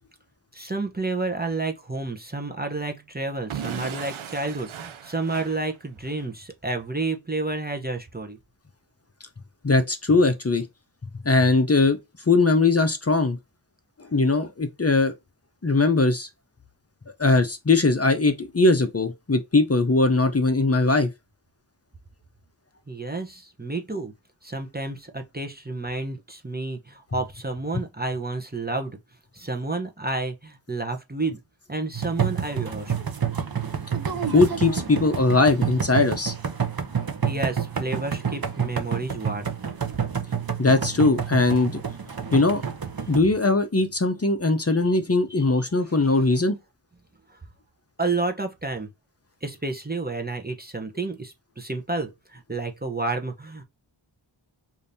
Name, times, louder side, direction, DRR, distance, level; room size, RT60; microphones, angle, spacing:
voice 1, 0.5-8.4 22.9-24.1 24.4-29.0 29.3-31.4 31.7-32.9 37.2-39.6 44.7-44.8 45.3-45.7 46.0-46.3 47.3-47.4 48.0-48.9 49.4-53.6, right 3 dB, 20° right, 0.8 m, -30 dB
Explosion / Shatter, 3.5-6.3, right 9 dB, 85° right, 0.6 m, -37 dB
voice 2, 9.6-10.6 11.2-12.0 12.3-13.4 14.0-15.1 15.6-16.3 17.2-21.1 34.3-36.3 40.6-41.8 42.3-42.6 43.1-46.6, left 3 dB, 30° left, 0.7 m, -20 dB
sound 1, 31.9-43.2, right 7 dB, 50° right, 0.8 m, -29 dB
5.0 x 2.7 x 2.7 m
wide cardioid pair, 50°, 47 cm